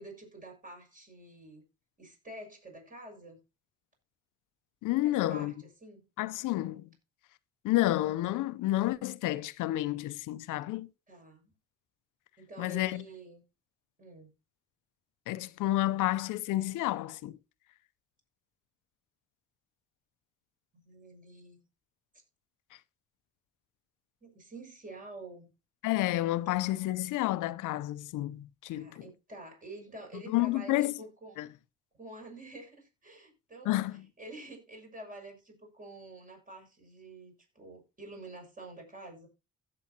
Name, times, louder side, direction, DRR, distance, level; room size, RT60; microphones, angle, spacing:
voice 1, 0.0-1.6 2.0-3.4 5.0-6.1 11.1-11.5 12.4-13.4 14.0-14.3 20.7-21.6 24.2-25.5 28.7-31.4 32.0-39.3, right 2 dB, 25° right, 6.3 m, -48 dB
voice 2, 4.8-5.5 6.2-6.9 7.6-10.9 12.6-13.0 15.3-17.4 25.8-29.0 30.3-30.9 31.4-31.5 33.7-34.0, left 16 dB, 90° left, 0.7 m, -30 dB
16.0 x 7.7 x 2.8 m
cardioid pair, 90°, 30 cm